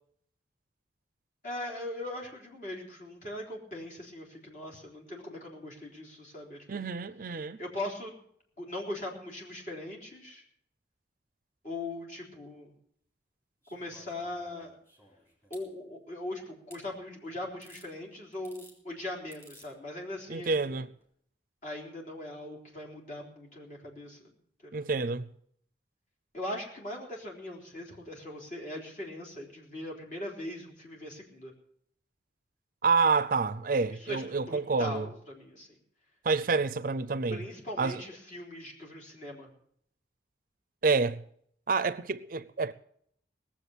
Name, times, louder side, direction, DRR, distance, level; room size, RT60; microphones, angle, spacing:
voice 1, 1.4-6.8 7.6-8.1 8.6-10.4 11.6-12.7 13.7-14.8 15.5-20.8 21.6-24.3 24.6-24.9 26.3-31.5 33.9-35.7 37.3-39.5, left 1 dB, 45° left, 3.7 m, -40 dB
voice 2, 6.7-7.6 20.3-20.9 24.7-25.3 32.8-35.1 36.2-37.4 37.8-38.0 40.8-41.2 41.7-42.7, right 4 dB, 50° right, 0.5 m, -28 dB
sound 1, 13.6-15.7 16.7-16.8 17.6-17.9 18.3-18.8 19.3-19.7 20.9-21.0, equal, 15° left, 3.6 m, -56 dB
18.5 x 7.5 x 8.2 m
head